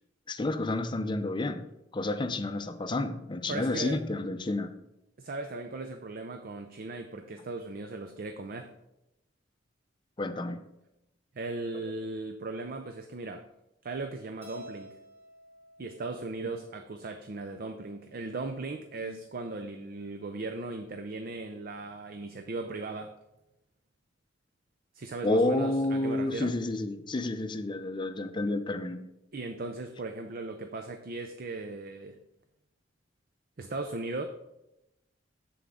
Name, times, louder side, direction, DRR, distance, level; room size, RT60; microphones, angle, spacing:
voice 1, 0.3-1.7 1.9-4.7 10.2-10.6 11.8-11.9 19.0-19.2 25.2-29.0, left 2 dB, 25° left, 9 dB, 0.5 m, -30 dB
voice 2, 3.5-4.0 5.2-8.7 11.3-13.4 13.8-15.0 15.8-23.1 24.9-26.5 29.3-32.2 33.6-34.3, right 3 dB, 50° right, 6 dB, 0.5 m, -37 dB
Keyboard (musical), 14.4-16.8, left 1 dB, 15° right, 1.9 m, -50 dB
7.3 x 7.0 x 3.7 m, 0.89 s
head